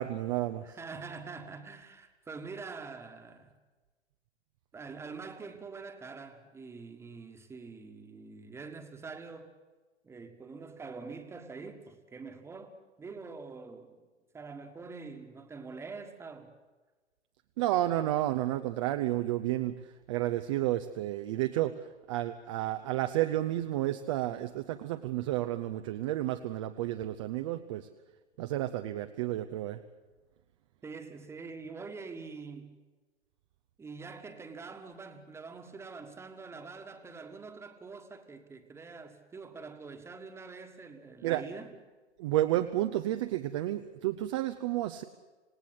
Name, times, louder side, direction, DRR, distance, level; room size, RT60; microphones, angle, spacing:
voice 1, 0.0-0.8 17.6-19.8 20.1-21.7 22.1-27.9 28.4-29.8 41.2-41.4 42.2-45.0, right 14 dB, 25° right, 0.7 m, -31 dB
voice 2, 0.6-3.5 4.7-9.5 10.0-14.0 14.3-16.5 30.8-32.7 33.8-41.7, right 4 dB, 5° right, 1.6 m, -45 dB
27.0 x 18.5 x 8.0 m
figure-of-eight pair, 120°, 35 cm